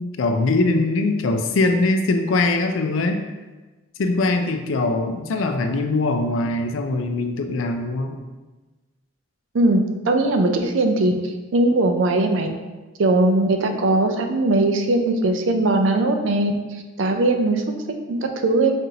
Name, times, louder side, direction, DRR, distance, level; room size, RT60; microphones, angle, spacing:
voice 1, 0.0-3.2 4.0-8.2, left 2 dB, 85° left, 6 dB, 0.4 m, -22 dB
voice 2, 10.1-11.1 11.5-12.5 13.0-16.5 17.0-17.6 18.1-18.7, right 2 dB, 75° right, 5 dB, 0.4 m, -19 dB
5.4 x 2.5 x 2.8 m, 1.2 s
head